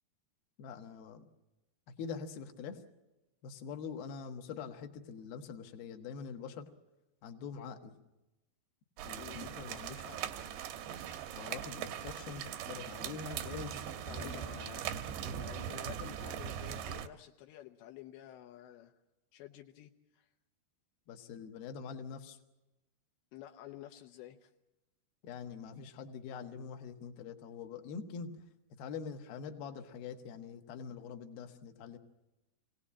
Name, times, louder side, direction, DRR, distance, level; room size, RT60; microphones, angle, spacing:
voice 1, 0.6-1.2 1.9-2.8 3.4-6.7 7.2-8.0 9.0-10.2 11.4-14.4 21.1-22.4 25.2-28.5 28.8-32.0, left 6 dB, 65° left, 4 dB, 3.1 m, -44 dB
sound 1, 9.0-17.1, right 9 dB, 80° right, 3.1 m, -41 dB
voice 2, 14.0-18.9 19.3-19.9 20.2-20.3 23.3-24.5, left 12 dB, 85° left, 5 dB, 3.1 m, -51 dB
24.0 x 18.0 x 8.6 m, 1.0 s
omnidirectional pair, 5.0 m